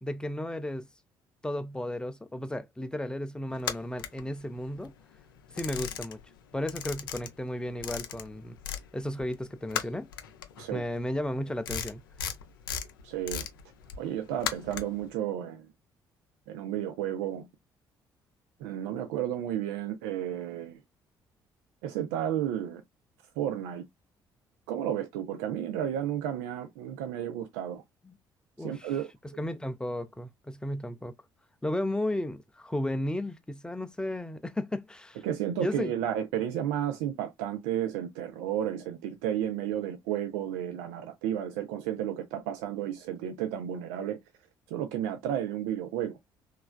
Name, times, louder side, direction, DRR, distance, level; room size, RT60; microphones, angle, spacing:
voice 1, 0.0-0.9 1.4-4.9 5.5-6.2 6.5-8.6 8.9-10.1 10.7-12.0 28.0-28.2 28.6-28.9 29.2-31.1 31.6-35.2 35.6-35.9, left 1 dB, 5° left, 0.5 m, -34 dB
sound 1, 3.6-4.9 5.2-6.4 6.6-8.9 9.2-15.1, left 8 dB, 75° left, 0.4 m, -37 dB
voice 2, 13.0-13.4 14.0-15.7 16.5-17.5 18.6-20.8 21.8-22.8 23.4-23.8 24.7-27.8 28.6-29.1 35.2-44.2 44.7-46.2, right 10 dB, 65° right, 0.4 m, -32 dB
3.2 x 2.3 x 2.2 m
figure-of-eight pair, 45°, 12 cm